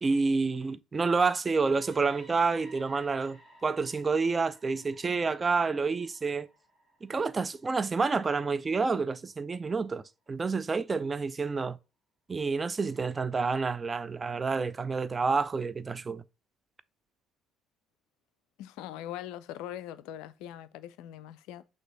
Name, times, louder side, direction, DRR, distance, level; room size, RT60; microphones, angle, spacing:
voice 1, 0.0-6.5 7.0-11.8 12.3-16.2, right 4 dB, 25° right, 0.3 m, -29 dB
sound 1, 1.3-9.2, equal, 5° right, 2.8 m, -58 dB
voice 2, 18.6-21.6, left 11 dB, 60° left, 0.3 m, -41 dB
6.0 x 2.4 x 3.6 m
figure-of-eight pair, 50°, 0 cm